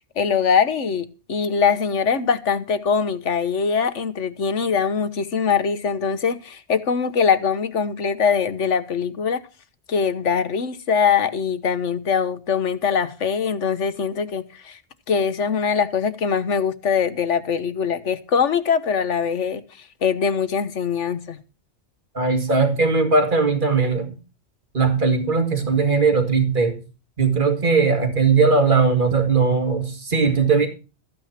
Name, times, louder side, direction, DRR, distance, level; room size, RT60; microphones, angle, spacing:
voice 1, 0.2-9.4 9.9-14.8 15.1-19.6 20.0-21.4, left 6 dB, 85° left, 1.5 m, -22 dB
voice 2, 22.1-24.1 24.7-26.8 27.2-30.7, right 4 dB, 45° right, 2.4 m, -19 dB
14.5 x 9.1 x 5.9 m
omnidirectional pair, 1.2 m